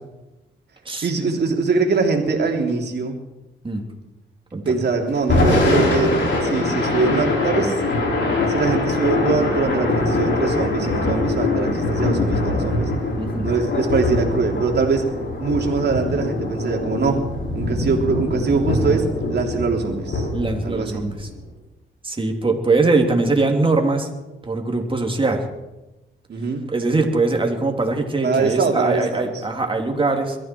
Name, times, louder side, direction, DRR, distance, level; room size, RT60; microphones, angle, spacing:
voice 1, 1.0-3.2 4.6-6.1 6.4-7.8 8.5-12.9 13.4-15.1 15.4-17.2 17.5-20.3 20.6-21.1 26.3-26.7 28.2-29.3, right 4 dB, 55° right, 2 dB, 3.5 m, -22 dB
Thunder / Rain, 5.2-21.4, left 2 dB, 70° left, 5.8 m, -22 dB
voice 2, 13.1-13.5 20.3-21.3 22.0-24.1 24.4-25.4 26.7-30.4, right 3 dB, 25° right, 2 dB, 3.2 m, -21 dB
22.5 x 14.0 x 4.7 m, 1.0 s
cardioid pair, 70°, 20 cm